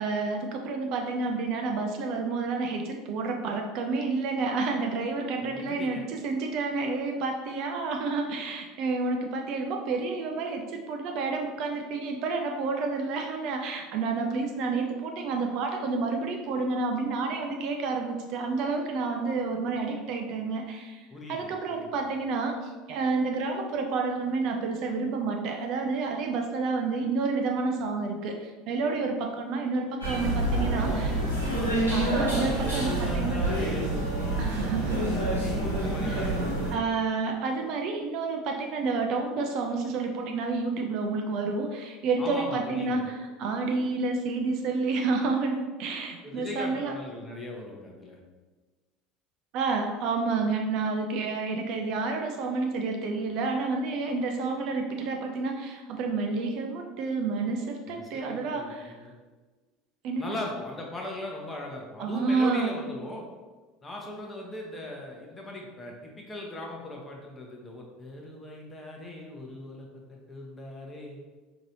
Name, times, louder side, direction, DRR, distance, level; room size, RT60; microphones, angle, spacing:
voice 1, 0.0-31.1 31.9-33.4 34.4-35.0 36.1-36.2 36.7-46.9 49.5-59.0 60.0-60.3 62.0-62.8, right 4 dB, 50° right, 3 dB, 0.4 m, -29 dB
voice 2, 5.4-6.0 21.1-21.9 30.7-31.8 32.4-37.0 42.2-43.1 46.2-48.2 57.9-59.1 60.2-63.2 63.8-71.2, left 2 dB, 20° left, -1 dB, 0.9 m, -39 dB
sound 1, 30.0-36.7, right 1 dB, 90° left, 1.1 m, -27 dB
5.2 x 2.8 x 2.6 m, 1.3 s
figure-of-eight pair, 70°, 0 cm